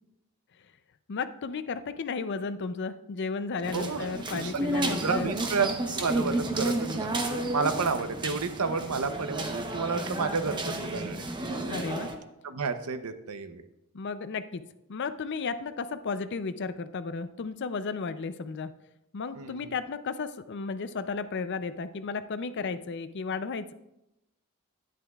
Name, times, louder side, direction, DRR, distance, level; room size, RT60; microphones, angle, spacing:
voice 1, 1.1-5.3 11.7-12.1 13.9-18.7 19.1-23.7, left 4 dB, 50° left, 12 dB, 0.5 m, -34 dB
sound 1, 3.6-12.2, right 1 dB, 20° right, 0.8 m, -32 dB
voice 2, 3.7-4.5 5.0-7.1 7.5-11.3 12.4-13.6 19.4-19.7, right 4 dB, 75° right, 9 dB, 0.7 m, -31 dB
11.0 x 10.0 x 2.4 m, 0.88 s
head